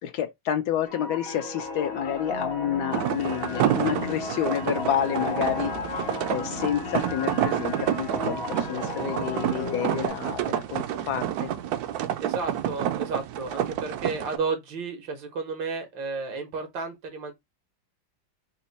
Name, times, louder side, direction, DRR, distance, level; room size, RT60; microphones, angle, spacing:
voice 1, 0.0-11.5, left 9 dB, 70° left, 1.0 m, -29 dB
sound 1, 0.9-10.1, left 3 dB, 55° left, 0.6 m, -34 dB
sound 2, 2.9-14.4, right 11 dB, 70° right, 0.9 m, -29 dB
voice 2, 12.2-17.3, right 4 dB, 90° right, 1.9 m, -32 dB
4.2 x 2.2 x 3.9 m
omnidirectional pair, 2.0 m